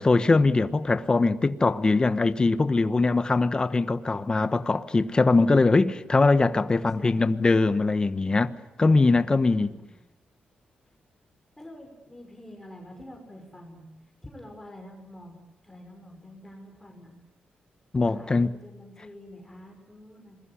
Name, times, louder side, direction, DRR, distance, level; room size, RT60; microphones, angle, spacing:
voice 1, 0.0-8.5 8.8-9.7 17.9-18.5, left 3 dB, 25° left, 1.1 m, -22 dB
voice 2, 6.7-7.2 9.3-9.9 11.6-13.9 14.2-15.4 15.6-17.2 18.1-20.4, left 1 dB, 10° left, 6.0 m, -47 dB
27.0 x 21.5 x 9.9 m
cardioid pair, 115°, 3 cm